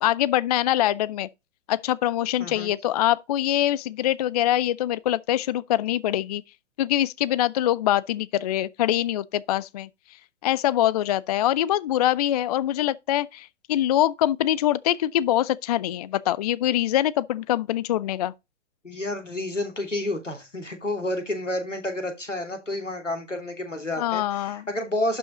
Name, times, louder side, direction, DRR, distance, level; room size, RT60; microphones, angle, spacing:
voice 1, 0.0-1.3 1.7-6.4 6.8-9.9 10.4-18.3 24.0-24.6, left 13 dB, 35° left, 0.4 m, -24 dB
voice 2, 2.4-2.7 18.8-25.2, left 1 dB, 90° left, 2.8 m, -30 dB
12.0 x 5.3 x 3.9 m
figure-of-eight pair, 115°, 36 cm